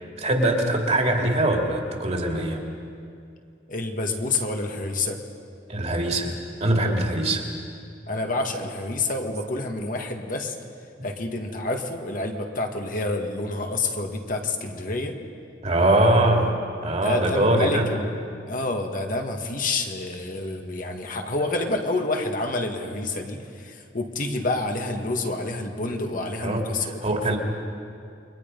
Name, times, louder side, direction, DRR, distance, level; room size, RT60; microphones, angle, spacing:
voice 1, 0.2-2.6 5.7-7.5 15.6-16.5 16.8-17.9 26.4-27.4, right 1 dB, 40° right, 1 dB, 2.7 m, -22 dB
voice 2, 3.7-5.2 8.1-10.6 11.0-15.2 16.9-27.4, left 2 dB, 50° left, 3 dB, 1.8 m, -28 dB
29.0 x 22.5 x 5.4 m, 2.4 s
head